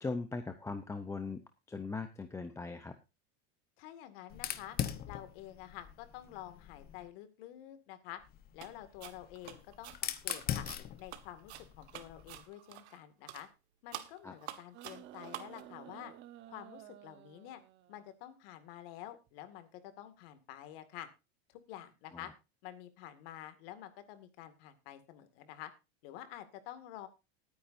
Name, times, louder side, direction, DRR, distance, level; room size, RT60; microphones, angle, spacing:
voice 1, 0.0-1.4 1.7-2.9 14.2-14.3 22.1-22.2, left 3 dB, 10° left, 8 dB, 0.7 m, -39 dB
voice 2, 3.8-4.8 5.1-8.2 8.5-10.7 11.0-13.5 13.8-16.1 16.5-17.6 17.9-21.1 21.5-22.3 22.6-25.7 26.0-27.1, left 12 dB, 60° left, 10 dB, 2.2 m, -49 dB
Fire, 4.3-7.1 8.2-12.4, left 11 dB, 30° left, 1.0 m, -41 dB
sound 1, 8.6-8.7 9.0-13.0 13.3-13.5 13.9-15.6, right 13 dB, 90° right, 1.6 m, -48 dB
sound 2, 14.7-18.2 19.3-19.4, right 12 dB, 35° right, 1.1 m, -53 dB
19.5 x 9.5 x 2.6 m, 0.27 s
supercardioid pair, 150°, 33 cm